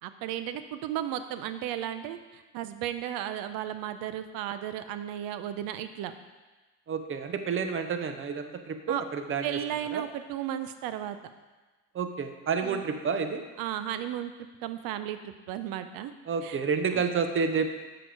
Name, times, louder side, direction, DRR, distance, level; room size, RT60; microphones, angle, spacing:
voice 1, 0.0-6.1 8.9-9.0 9.4-11.2 12.6-12.8 13.6-14.3 14.6-16.1 16.4-16.6 16.9-17.0, right 11 dB, 70° right, 11 dB, 0.7 m, -34 dB
voice 2, 6.9-9.6 9.9-10.0 11.9-13.4 16.3-17.7, right 5 dB, 35° right, 7 dB, 0.8 m, -29 dB
7.6 x 5.0 x 4.7 m, 1.2 s
supercardioid pair, 80°, 37 cm